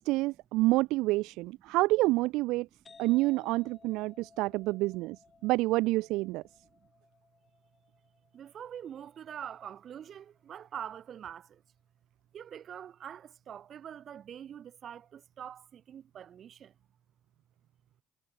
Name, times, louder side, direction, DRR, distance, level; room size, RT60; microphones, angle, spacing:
voice 1, 0.0-2.7 3.0-5.2 5.4-6.4, right 20 dB, 85° right, 0.3 m, -28 dB
sound 1, 2.9-10.3, left 5 dB, 30° left, 2.7 m, -60 dB
voice 2, 8.3-11.6 12.3-16.8, right 9 dB, 50° right, 2.3 m, -45 dB
cardioid pair, 95°, 0 cm